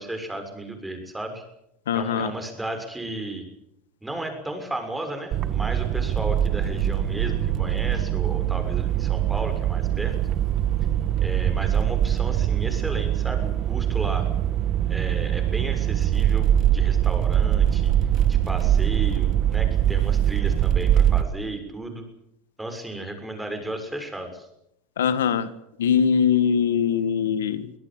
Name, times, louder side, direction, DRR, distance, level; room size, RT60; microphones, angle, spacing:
voice 1, 0.0-1.4 1.9-3.4 4.0-10.1 11.2-14.2 14.9-17.9 18.3-22.0 22.6-24.5, right 1 dB, 10° right, 6 dB, 6.6 m, -34 dB
voice 2, 1.9-2.3 25.0-25.5 25.8-27.7, left 7 dB, 90° left, 14 dB, 1.6 m, -22 dB
sound 1, 5.3-21.2, right 10 dB, 45° right, 1.7 m, -22 dB
24.5 x 17.5 x 8.9 m, 0.80 s
hypercardioid pair, 100°, 0 cm